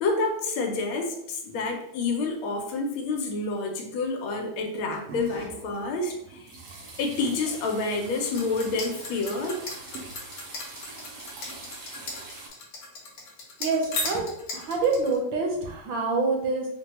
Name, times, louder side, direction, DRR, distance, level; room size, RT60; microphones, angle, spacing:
voice 1, 0.0-6.5 7.0-9.6, left 3 dB, 90° left, 3 dB, 1.5 m, -28 dB
sound 1, 4.7-12.5, equal, 90° right, 1.7 m, -42 dB
sound 2, 8.3-15.2, left 3 dB, 65° left, 1.3 m, -35 dB
voice 2, 13.6-16.7, right 3 dB, 75° right, 1 dB, 1.4 m, -26 dB
4.4 x 2.2 x 3.0 m, 0.75 s
omnidirectional pair, 2.2 m